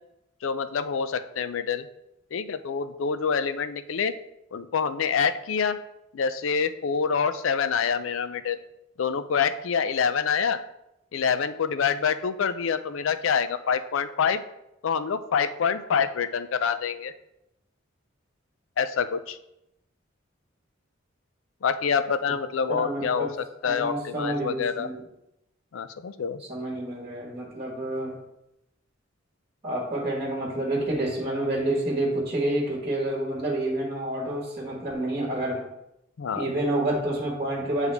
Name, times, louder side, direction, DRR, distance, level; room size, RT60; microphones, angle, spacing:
voice 1, 0.4-1.9 2.3-4.1 4.5-5.8 6.1-8.6 9.0-10.6 11.1-14.4 14.8-17.1 18.8-19.4 21.6-23.3 23.6-24.9 25.7-26.4 36.2-36.5, left 6 dB, 70° left, 12 dB, 0.4 m, -26 dB
voice 2, 22.8-23.3 23.6-25.0 26.5-28.2 29.6-35.6 36.3-37.9, right 1 dB, 30° right, -3 dB, 1.4 m, -28 dB
8.1 x 3.6 x 3.4 m, 0.87 s
head